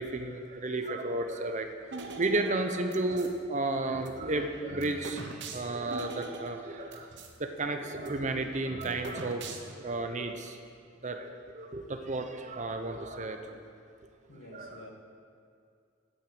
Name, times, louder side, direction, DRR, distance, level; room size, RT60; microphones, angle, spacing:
voice 1, 0.0-1.7 2.2-7.1 7.4-10.6 11.0-13.6 14.5-14.9, right 2 dB, 35° right, 6 dB, 0.7 m, -33 dB
sound 1, 1.9-3.4 3.9-7.4 7.6-7.7 7.9-9.9, right 3 dB, 60° right, 1.0 m, -43 dB
voice 2, 14.3-14.9, left 1 dB, 80° left, 1 dB, 1.8 m, -49 dB
8.7 x 8.5 x 7.8 m, 2.4 s
head